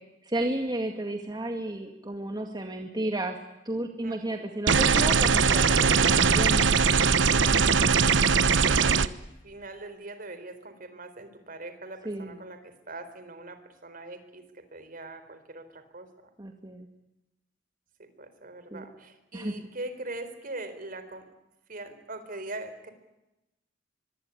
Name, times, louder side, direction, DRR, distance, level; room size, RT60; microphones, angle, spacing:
voice 1, 0.2-3.4 3.7-6.7 12.1-12.4 16.4-16.9 18.7-18.8 19.3-19.5, right 1 dB, 25° right, 3 dB, 2.1 m, -32 dB
voice 2, 4.0-4.5 7.3-9.1 9.4-16.3 18.0-21.3 21.7-22.9, right 2 dB, 50° right, 10 dB, 4.2 m, -42 dB
sound 1, 4.7-9.1, right 5 dB, 75° right, 1.0 m, -21 dB
24.5 x 24.0 x 9.9 m, 0.95 s
head